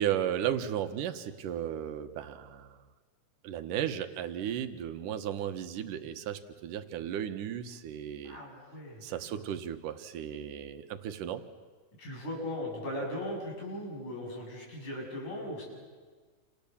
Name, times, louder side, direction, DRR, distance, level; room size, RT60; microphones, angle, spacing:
voice 1, 0.0-2.8 3.4-8.4 9.0-11.4, right 10 dB, 75° right, 8 dB, 2.8 m, -35 dB
voice 2, 8.2-9.0 12.0-15.6, left 1 dB, 65° left, -1 dB, 9.6 m, -38 dB
29.0 x 28.5 x 7.2 m, 1.4 s
omnidirectional pair, 3.8 m